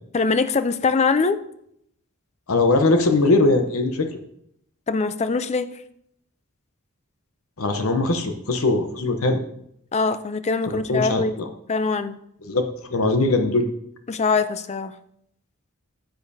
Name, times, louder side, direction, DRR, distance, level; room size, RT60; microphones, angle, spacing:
voice 1, 0.1-1.4 4.9-5.7 9.9-11.4 11.7-12.2 14.1-14.9, left 4 dB, 30° left, 12 dB, 0.4 m, -22 dB
voice 2, 2.5-4.1 7.6-9.4 10.6-11.5 12.4-13.7, left 2 dB, 70° left, 6 dB, 0.8 m, -21 dB
10.0 x 9.0 x 2.7 m, 0.73 s
head